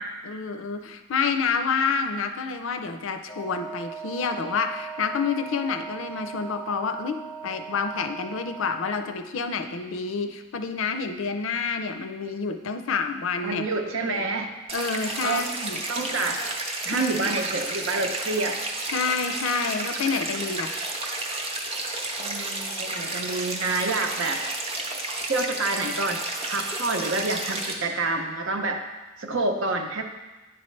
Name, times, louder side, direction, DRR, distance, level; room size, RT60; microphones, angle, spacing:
voice 1, 0.2-13.7 14.1-14.2 14.7-15.8 16.9-17.3 18.9-20.8, left 5 dB, 70° left, 7 dB, 0.5 m, -28 dB
Wind instrument woodwind instrument, 3.3-9.0, right 6 dB, 25° left, 0.5 m, -39 dB
voice 2, 13.4-14.6 15.2-15.5 15.9-16.4 16.8-18.6 22.2-24.4 25.3-28.8 29.2-30.0, right 3 dB, 70° right, 4 dB, 0.7 m, -28 dB
sound 1, 14.7-27.7, right 2 dB, 30° right, 0.7 m, -31 dB
9.7 x 4.2 x 3.2 m, 1.1 s
head